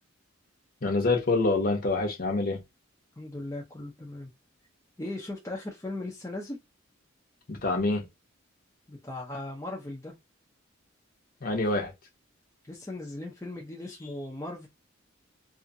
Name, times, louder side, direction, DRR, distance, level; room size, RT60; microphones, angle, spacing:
voice 1, 0.8-2.6 7.5-8.1 11.4-11.9, left 3 dB, 45° left, 0.9 m, -26 dB
voice 2, 3.2-4.3 5.0-6.6 8.9-10.1 12.7-14.7, left 2 dB, 15° left, 0.6 m, -38 dB
2.7 x 2.5 x 2.6 m
head